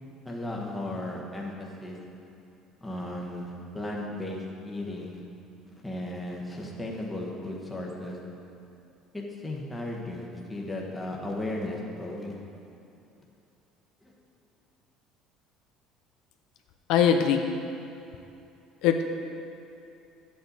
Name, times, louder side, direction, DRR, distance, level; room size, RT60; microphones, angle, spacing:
voice 1, 0.2-1.5 1.8-2.0 2.8-5.2 5.8-8.2 9.1-12.3, left 1 dB, 5° left, -2 dB, 1.1 m, -35 dB
voice 2, 16.9-17.5 18.8-19.0, left 8 dB, 65° left, 5 dB, 0.6 m, -21 dB
12.0 x 8.4 x 4.0 m, 2.7 s
cardioid pair, 170°, 0 cm